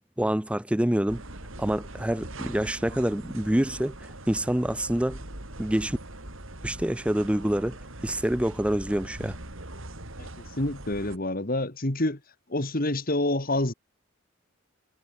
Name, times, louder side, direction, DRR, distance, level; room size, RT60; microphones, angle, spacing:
voice 1, 0.2-1.2 1.6-5.2 5.6-6.0 6.6-7.8 8.0-9.4, right 1 dB, 5° right, 0.4 m, -26 dB
sound 1, 1.1-11.2, right 1 dB, 60° right, 4.5 m, -41 dB
voice 2, 10.6-12.2 12.5-13.7, left 1 dB, 40° left, 2.1 m, -27 dB
head